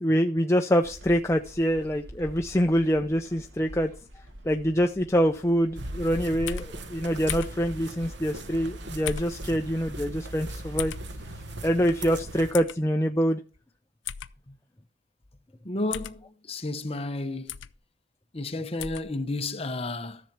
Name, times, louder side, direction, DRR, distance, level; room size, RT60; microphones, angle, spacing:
voice 1, 0.0-3.9 4.4-10.9 11.6-13.4, equal, 15° left, 0.5 m, -25 dB
sound 1, 0.8-9.1, equal, 90° right, 2.1 m, -47 dB
sound 2, 5.8-12.5, right 1 dB, 65° right, 1.1 m, -39 dB
sound 3, 6.5-6.7 7.3-7.6 9.1-9.4 10.8-11.0 12.5-12.8 14.1-14.3 15.9-16.2 17.5-17.7 18.8-19.1, left 9 dB, 85° left, 0.6 m, -34 dB
voice 2, 15.6-17.6 18.3-20.2, left 2 dB, 30° left, 0.9 m, -32 dB
13.5 x 7.2 x 4.5 m
head